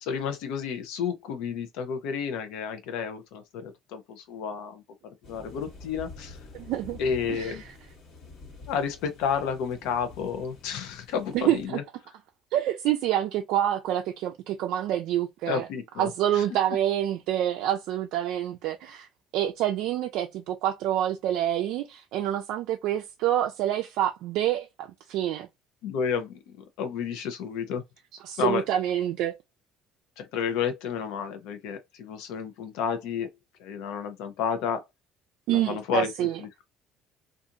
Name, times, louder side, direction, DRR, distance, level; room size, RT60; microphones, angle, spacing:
voice 1, 0.0-4.8 5.3-6.4 7.0-7.6 8.7-11.8 15.5-16.4 25.8-26.4 26.8-27.8 28.4-28.6 30.2-33.3 33.6-34.8 35.7-36.6, left 7 dB, 80° left, 0.6 m, -31 dB
sound 1, 5.2-11.7, left 3 dB, 55° left, 1.3 m, -47 dB
voice 2, 6.5-7.0 7.3-7.7 11.3-11.8 12.5-15.7 16.0-19.1 19.3-25.5 28.2-29.3 35.5-36.4, right 12 dB, 70° right, 0.3 m, -27 dB
2.5 x 2.4 x 2.7 m
cardioid pair, 145°, 0 cm